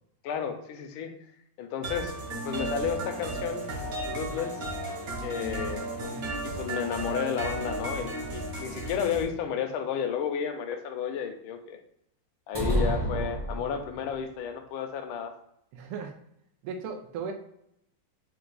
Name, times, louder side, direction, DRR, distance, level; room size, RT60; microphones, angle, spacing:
voice 1, 0.2-1.1 1.6-2.1 2.4-3.7 4.0-4.7 5.2-5.9 6.4-11.8 12.5-15.4, left 7 dB, 75° left, 6 dB, 1.4 m, -32 dB
sound 1, 1.8-9.2, right 2 dB, 55° right, 1.0 m, -34 dB
sound 2, 12.5-14.1, equal, 25° right, 0.5 m, -29 dB
voice 2, 15.7-16.1 16.6-17.3, right 5 dB, 85° right, 4 dB, 1.6 m, -36 dB
4.5 x 2.3 x 3.9 m, 0.75 s
omnidirectional pair, 2.4 m